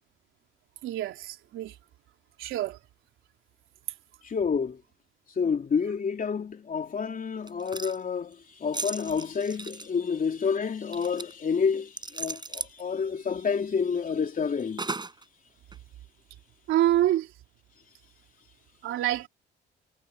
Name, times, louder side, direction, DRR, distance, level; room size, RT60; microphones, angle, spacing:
voice 1, 0.8-1.7 2.4-2.8 16.7-17.3 18.8-19.3, right 13 dB, 85° right, 3.5 m, -26 dB
voice 2, 4.2-4.8 5.4-14.9, left 6 dB, 45° left, 3.5 m, -29 dB
sound 1, 7.5-8.0 8.7-9.9 10.9-11.3 12.0-12.8 14.8-15.2 15.7-15.8, right 3 dB, 20° right, 5.7 m, -36 dB
cardioid pair, 90°, 20 cm